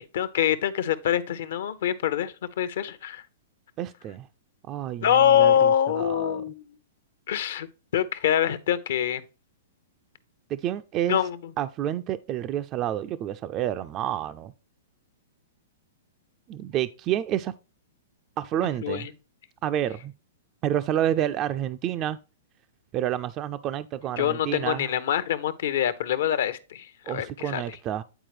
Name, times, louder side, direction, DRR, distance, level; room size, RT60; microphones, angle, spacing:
voice 1, 0.0-3.2 5.0-6.6 7.3-7.7 7.9-9.2 11.1-11.4 18.8-19.1 24.2-27.6, left 10 dB, 65° left, 0.7 m, -24 dB
voice 2, 3.8-4.3 4.7-6.5 10.5-11.2 11.6-14.5 16.5-17.5 18.4-19.1 19.6-20.1 20.6-22.2 22.9-24.9 27.1-28.0, right 11 dB, 30° right, 0.3 m, -29 dB
9.0 x 4.3 x 3.2 m
hypercardioid pair, 130°, 0 cm